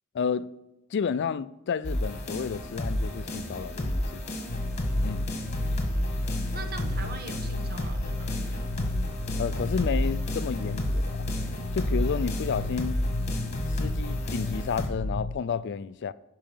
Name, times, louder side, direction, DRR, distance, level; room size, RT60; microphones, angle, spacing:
voice 1, 0.1-0.5 0.9-4.2 5.0-5.3 9.4-11.1 11.7-13.0 13.7-16.1, left 6 dB, 55° left, 0.4 m, -31 dB
sound 1, 1.8-14.9, left 1 dB, 35° left, 1.7 m, -32 dB
sound 2, 4.5-15.3, left 2 dB, 80° left, 0.7 m, -33 dB
voice 2, 6.5-8.7, right 3 dB, 50° right, 1.0 m, -42 dB
10.0 x 5.5 x 5.5 m
head